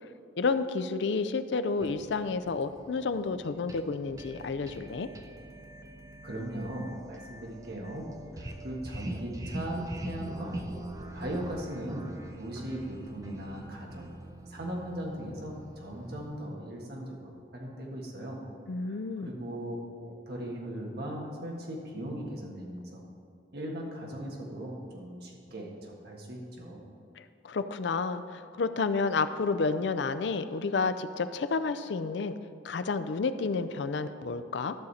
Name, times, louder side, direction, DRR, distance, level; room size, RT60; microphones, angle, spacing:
voice 1, 0.4-5.1 18.7-19.3 27.2-32.3 32.6-34.7, left 4 dB, 70° left, 12 dB, 0.4 m, -30 dB
sound 1, 1.8-16.3, right 1 dB, 20° right, 0.6 m, -43 dB
voice 2, 6.2-8.1 8.3-10.6 11.1-14.1 14.5-18.4 18.8-23.0 23.5-26.8, right 1 dB, 60° right, -1 dB, 1.6 m, -38 dB
13.0 x 6.5 x 4.2 m, 2.4 s
head